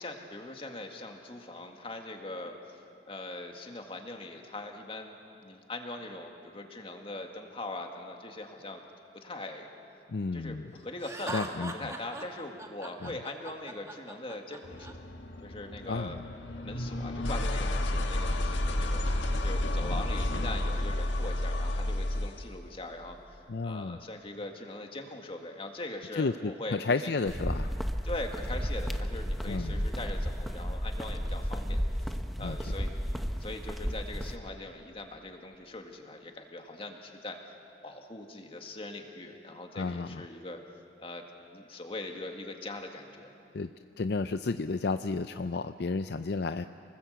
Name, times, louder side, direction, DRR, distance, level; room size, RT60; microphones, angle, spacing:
voice 1, 0.0-2.8 3.1-5.2 5.4-8.8 9.1-9.7 10.3-14.9 15.4-16.2 16.6-27.1 28.0-33.0 33.4-37.4 37.8-40.6 41.0-41.2 41.5-43.3, left 2 dB, 30° left, 3 dB, 1.9 m, -41 dB
voice 2, 10.1-10.6 11.3-11.7 13.0-13.1 15.9-16.1 23.5-24.0 26.1-27.7 29.5-29.9 32.4-32.6 39.7-40.2 43.5-43.7 44.0-46.7, left 3 dB, 60° left, 10 dB, 0.5 m, -32 dB
Laughter, 11.0-14.9, right 2 dB, 15° right, 1.4 m, -40 dB
sound 1, 14.6-22.5, left 1 dB, 90° left, 1.7 m, -31 dB
sound 2, 27.3-34.4, equal, ahead, 0.8 m, -33 dB
28.0 x 20.0 x 8.1 m, 2.7 s
head